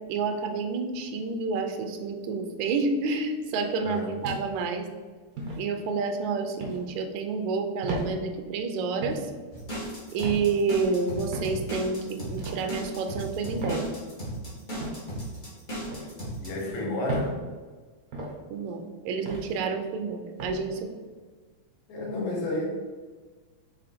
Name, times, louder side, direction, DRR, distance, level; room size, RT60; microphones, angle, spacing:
voice 1, 0.1-4.9 5.6-9.3 10.1-13.9 18.5-20.9, right 4 dB, 80° right, 5 dB, 2.0 m, -29 dB
voice 2, 3.8-4.2 16.4-17.4 21.9-22.7, left 2 dB, 75° left, -2 dB, 2.5 m, -31 dB
sound 1, 4.2-4.7 5.4-5.6 6.6-6.8 7.8-8.1 9.0-9.3 10.2-10.5 11.3-11.6 12.4-12.6 13.6-13.9 14.7-15.0 15.9-16.1 17.1-17.3 18.1-18.4 19.3-19.5 20.4-20.6, right 2 dB, 65° right, 0.8 m, -34 dB
sound 2, 9.5-16.6, right 1 dB, 30° left, 0.9 m, -36 dB
6.6 x 3.6 x 4.2 m, 1.4 s
omnidirectional pair, 3.4 m